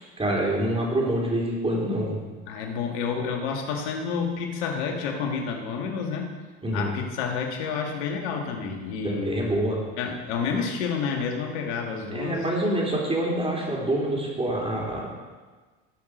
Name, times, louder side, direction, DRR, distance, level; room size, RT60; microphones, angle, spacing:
voice 1, 0.0-2.2 6.6-6.9 9.0-9.8 12.1-15.1, right 1 dB, 15° right, -2 dB, 4.0 m, -26 dB
voice 2, 2.5-6.3 6.7-9.5 10.0-12.4, left 5 dB, 85° left, 2 dB, 2.0 m, -29 dB
18.0 x 6.0 x 5.1 m, 1.4 s
supercardioid pair, 95°, 33 cm